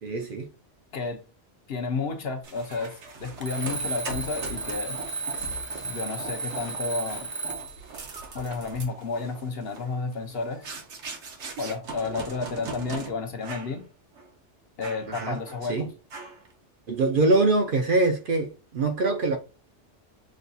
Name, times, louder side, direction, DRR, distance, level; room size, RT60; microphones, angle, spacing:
voice 1, 0.0-0.5 15.2-15.4 15.7-15.9 16.9-19.4, right 3 dB, 55° right, 0.7 m, -23 dB
voice 2, 1.7-2.9 3.2-5.0 5.8-7.3 8.3-10.7 11.6-13.8 14.8-15.9, left 4 dB, 60° left, 0.9 m, -31 dB
sound 1, 2.4-13.1 13.4-13.8 14.1-14.3 14.8-15.7 16.1-16.5, right 4 dB, 70° right, 1.2 m, -40 dB
Alarm, 3.4-7.8, right 3 dB, 15° right, 0.4 m, -34 dB
6.2 x 2.2 x 2.6 m
omnidirectional pair, 1.2 m